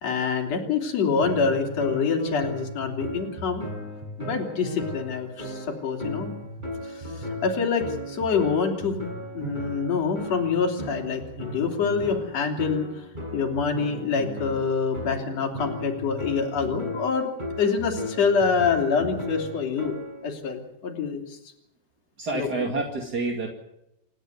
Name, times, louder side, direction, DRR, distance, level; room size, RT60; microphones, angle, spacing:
voice 1, 0.0-3.6 4.2-6.3 6.8-9.1 9.3-13.0 13.3-17.3 17.6-19.9 20.2-21.4 22.3-22.7, left 5 dB, 40° left, 2 dB, 4.1 m, -26 dB
sound 1, 1.2-20.3, left 1 dB, 10° right, 6.1 m, -36 dB
voice 2, 22.2-23.5, right 3 dB, 35° right, 1 dB, 1.7 m, -28 dB
28.0 x 11.5 x 9.4 m, 0.84 s
omnidirectional pair, 5.1 m